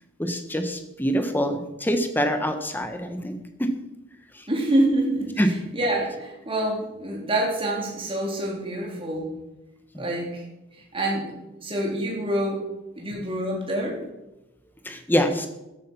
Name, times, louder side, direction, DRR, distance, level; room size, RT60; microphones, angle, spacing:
voice 1, 0.2-3.7 5.4-5.5 14.8-15.5, equal, 10° left, 7 dB, 1.4 m, -25 dB
voice 2, 4.5-9.3 9.9-10.4 10.9-11.3 11.6-12.6 13.0-14.0, right 1 dB, 25° right, -2 dB, 3.9 m, -26 dB
14.0 x 11.5 x 5.7 m, 0.96 s
head